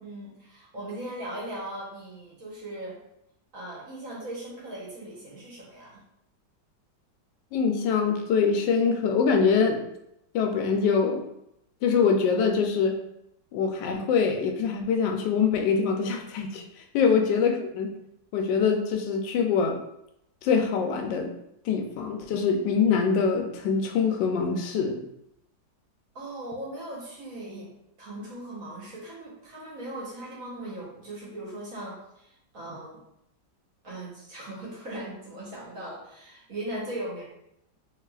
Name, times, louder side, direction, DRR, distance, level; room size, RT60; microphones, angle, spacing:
voice 1, 0.0-3.0 3.5-6.0 17.0-17.5 26.1-27.7 28.0-33.0 33.8-37.2, right 1 dB, 55° right, -5 dB, 1.3 m, -39 dB
voice 2, 7.5-9.8 10.3-11.2 11.8-13.0 13.5-16.6 16.9-17.9 18.3-19.8 20.4-21.3 21.7-25.1, left 5 dB, 90° left, 4 dB, 1.3 m, -24 dB
3.5 x 3.2 x 2.3 m, 0.80 s
omnidirectional pair, 1.9 m